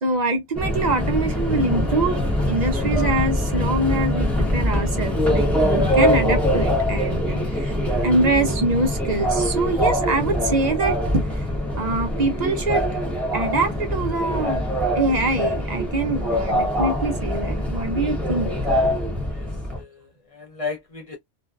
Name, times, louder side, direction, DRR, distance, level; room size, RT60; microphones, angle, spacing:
voice 1, 0.0-7.7 8.0-11.4 11.8-12.8 13.3-14.6 14.9-18.5, right 2 dB, 50° right, 0.6 m, -24 dB
Subway metro underground, 0.5-19.8, equal, ahead, 0.8 m, -23 dB
voice 2, 19.7-21.2, left 5 dB, 55° left, 0.3 m, -34 dB
2.5 x 2.2 x 2.3 m
omnidirectional pair, 1.2 m